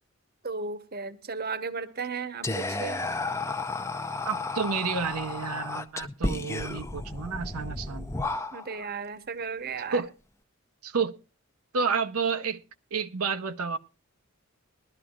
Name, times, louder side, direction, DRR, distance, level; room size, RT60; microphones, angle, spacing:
voice 1, 0.4-3.0 8.5-10.0, right 5 dB, 45° right, 13 dB, 0.9 m, -35 dB
Whispering, 2.4-8.9, left 2 dB, 15° left, 0.5 m, -33 dB
voice 2, 4.2-8.1 9.9-10.1 10.8-11.2 11.7-12.6 12.9-13.8, right 5 dB, 90° right, 8 dB, 0.7 m, -30 dB
20.5 x 12.0 x 2.4 m, 0.30 s
head